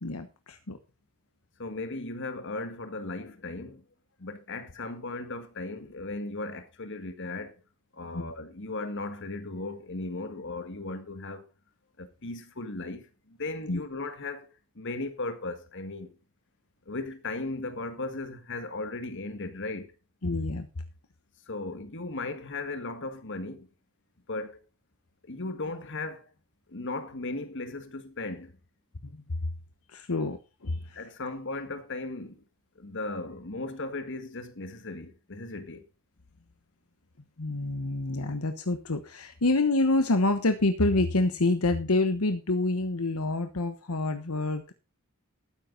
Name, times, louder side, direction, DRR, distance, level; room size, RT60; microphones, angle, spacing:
voice 1, 0.0-0.8 8.1-8.2 13.7-13.8 20.2-20.7 29.1-29.2 29.9-31.0 37.4-44.7, left 2 dB, 80° left, 1.2 m, -27 dB
voice 2, 1.6-3.8 4.2-7.5 7.9-11.5 12.0-16.1 16.9-19.9 21.5-23.7 24.3-24.6 25.2-26.3 26.7-28.5 30.9-32.4 32.8-35.8, left 2 dB, 60° left, 1.8 m, -36 dB
13.0 x 9.6 x 4.0 m
head